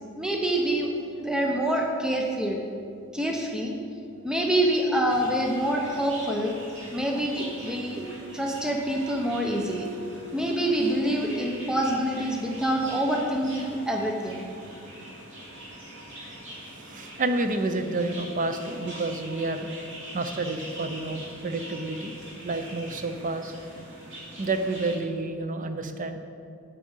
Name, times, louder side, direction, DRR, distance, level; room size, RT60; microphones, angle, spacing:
voice 1, 0.2-0.9 1.2-2.6 3.1-3.8 4.2-6.5 6.9-8.1 8.3-9.9 10.3-14.4, right 1 dB, 5° right, 0 dB, 0.7 m, -26 dB
sound 1, 5.1-25.0, right 1 dB, 60° right, 2.8 m, -43 dB
voice 2, 16.7-19.7 20.1-22.1 22.4-23.5 24.4-26.2, right 2 dB, 40° right, 8 dB, 0.6 m, -29 dB
8.4 x 8.4 x 5.5 m, 2.4 s
head